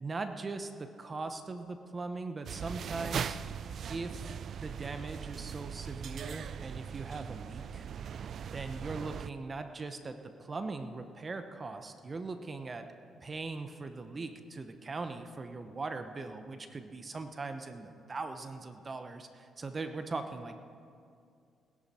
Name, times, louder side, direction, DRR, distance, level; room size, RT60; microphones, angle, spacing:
voice 1, 0.0-3.4 3.9-7.9 8.5-12.9 13.2-20.6, right 3 dB, 30° right, 8 dB, 0.9 m, -40 dB
sound 1, 2.4-9.3, right 7 dB, 60° right, 0.3 m, -40 dB
20.0 x 11.5 x 4.3 m, 2.4 s
cardioid pair, 90°, 0 cm